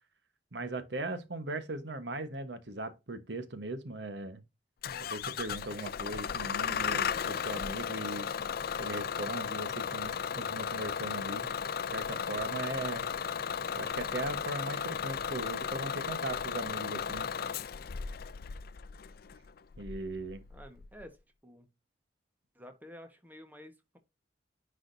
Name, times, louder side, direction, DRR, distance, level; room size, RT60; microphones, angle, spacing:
voice 1, 0.5-4.4 5.0-8.3 8.8-11.5 11.9-13.1 13.7-17.3 19.8-20.4, right 2 dB, 70° right, 1.2 m, -39 dB
Bus / Engine starting, 4.8-21.0, left 7 dB, 55° left, 0.4 m, -35 dB
voice 2, 20.5-21.7 22.5-24.0, equal, 10° right, 1.3 m, -51 dB
10.0 x 4.9 x 2.7 m
head